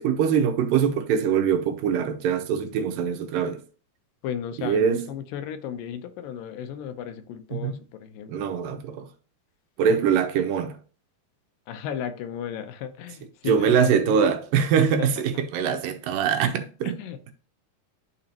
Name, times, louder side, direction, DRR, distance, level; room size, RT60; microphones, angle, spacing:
voice 1, 0.0-3.6 4.6-5.0 7.5-7.7 8.3-9.1 9.8-10.8 13.5-17.0, right 7 dB, 85° right, 2.5 m, -23 dB
voice 2, 4.2-8.5 11.7-14.3 15.0-15.2 16.8-17.2, left 9 dB, 85° left, 2.5 m, -35 dB
12.0 x 4.1 x 2.9 m
omnidirectional pair, 3.9 m